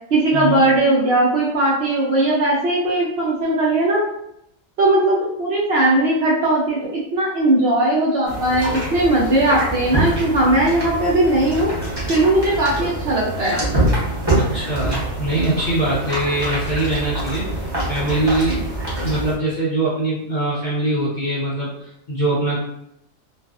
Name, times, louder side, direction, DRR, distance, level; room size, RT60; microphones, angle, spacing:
voice 1, 0.1-4.0 4.8-11.7 12.1-13.6, right 1 dB, 60° right, -4 dB, 0.7 m, -18 dB
sound 1, 8.2-19.3, right 1 dB, 25° right, 0.7 m, -25 dB
voice 2, 14.3-18.7 19.0-22.6, right 1 dB, 55° left, -8 dB, 0.5 m, -23 dB
2.4 x 2.4 x 2.3 m, 0.79 s
omnidirectional pair, 1.4 m